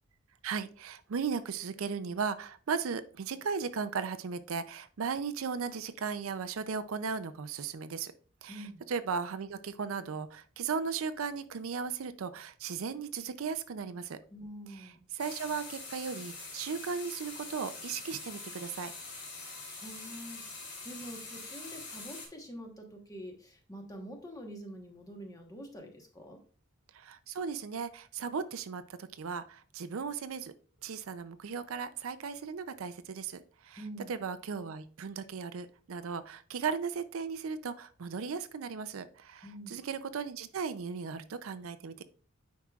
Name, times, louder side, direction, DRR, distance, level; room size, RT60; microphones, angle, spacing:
voice 1, 0.4-8.1 8.4-14.2 15.1-18.9 26.9-30.5 30.8-33.8 34.1-42.1, right 5 dB, 70° right, 12 dB, 0.5 m, -36 dB
voice 2, 8.5-8.8 14.3-15.0 19.8-26.4 33.8-34.1 39.4-39.8, equal, 15° left, 3 dB, 1.1 m, -46 dB
sound 1, 15.2-22.3, left 3 dB, 50° left, 2.7 m, -44 dB
9.4 x 4.8 x 2.4 m, 0.40 s
head